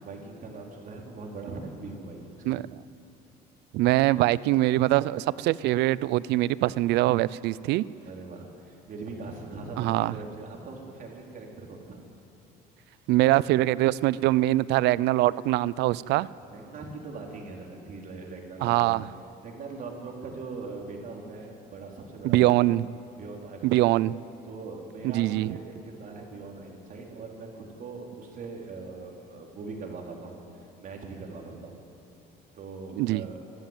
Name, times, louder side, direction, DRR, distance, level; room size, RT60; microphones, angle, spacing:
voice 1, 0.0-2.6 8.0-12.0 16.5-19.0 19.4-22.7 23.2-23.9 24.4-31.8 32.5-33.4, right 3 dB, 55° right, 0 dB, 4.2 m, -41 dB
voice 2, 3.7-7.8 9.8-10.1 13.1-16.3 18.6-19.0 22.2-22.9 23.6-24.1 25.0-25.6 33.0-33.2, right 16 dB, 85° right, 20 dB, 0.5 m, -23 dB
26.5 x 13.0 x 9.2 m, 2.9 s
cardioid pair, 110°, 17 cm